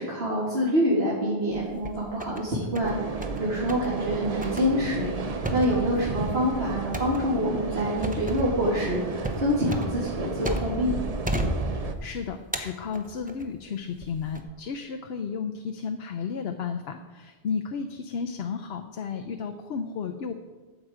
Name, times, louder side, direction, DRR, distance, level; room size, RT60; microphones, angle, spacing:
voice 1, 0.0-3.0 3.4-11.0, equal, 70° right, -6 dB, 2.4 m, -26 dB
sound 1, 1.5-2.4 2.7-3.4 3.7-3.9 4.4-10.9 11.2-12.1 12.5-13.5 14.0-14.4, equal, 10° right, 0.8 m, -33 dB
sound 2, 2.8-11.9, right 4 dB, 40° right, 0.7 m, -32 dB
voice 2, 11.7-20.3, left 6 dB, 70° left, 6 dB, 0.9 m, -33 dB
12.5 x 7.8 x 4.9 m, 1.3 s
omnidirectional pair, 1.1 m